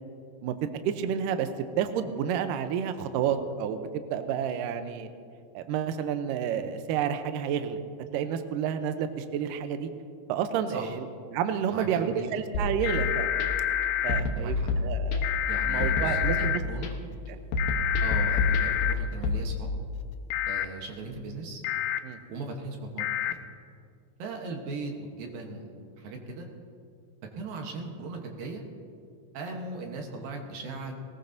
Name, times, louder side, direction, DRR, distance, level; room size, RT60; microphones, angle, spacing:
voice 1, 0.8-1.5 1.8-5.1 5.5-7.8 8.1-9.9 10.3-13.3 14.0-15.4 15.6-16.6 17.3-17.4 22.0-22.2, right 8 dB, 90° right, 8 dB, 1.9 m, -30 dB
voice 2, 11.7-12.3 14.2-14.7 15.5-16.9 18.0-19.7 20.5-21.6 22.3-23.4 24.2-26.5 27.4-28.6 29.3-30.9, right 3 dB, 70° right, 2 dB, 2.6 m, -38 dB
sound 1, 12.5-13.5 14.1-15.4 15.8-16.9 17.5-19.4, left 3 dB, 70° left, 2.6 m, -28 dB
sound 2, 12.8-14.2 15.2-16.6 17.6-18.9 20.3-20.7 21.6-22.0 23.0-23.3, left 11 dB, 85° left, 2.1 m, -28 dB
20.0 x 19.0 x 2.7 m, 2.3 s
omnidirectional pair, 4.8 m